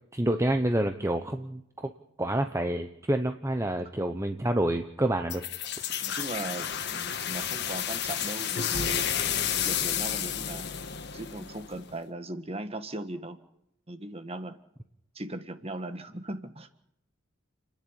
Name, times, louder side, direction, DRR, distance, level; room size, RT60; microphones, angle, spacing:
voice 1, 0.1-1.9 2.2-5.4, right 1 dB, 15° right, 7 dB, 0.9 m, -28 dB
sound 1, 5.3-11.9, left 9 dB, 55° left, 1.7 m, -31 dB
voice 2, 6.0-9.1 9.4-10.7 11.1-13.4 13.9-14.6 15.1-16.7, right 2 dB, 30° right, 10 dB, 1.6 m, -38 dB
30.0 x 10.5 x 9.9 m, 0.77 s
head